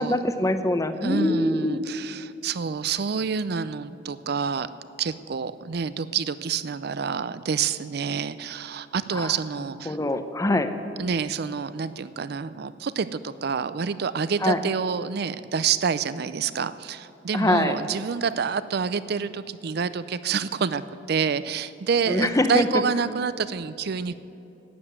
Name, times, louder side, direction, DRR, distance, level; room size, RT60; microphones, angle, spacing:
voice 1, 0.0-1.8 9.1-9.3 9.9-10.7 14.4-14.6 17.3-17.8 22.1-22.7, left 1 dB, 20° left, 9 dB, 0.7 m, -24 dB
voice 2, 1.0-4.7 5.0-10.0 11.0-20.8 21.1-24.1, right 6 dB, 60° right, 15 dB, 0.5 m, -28 dB
12.0 x 9.5 x 7.9 m, 3.0 s
head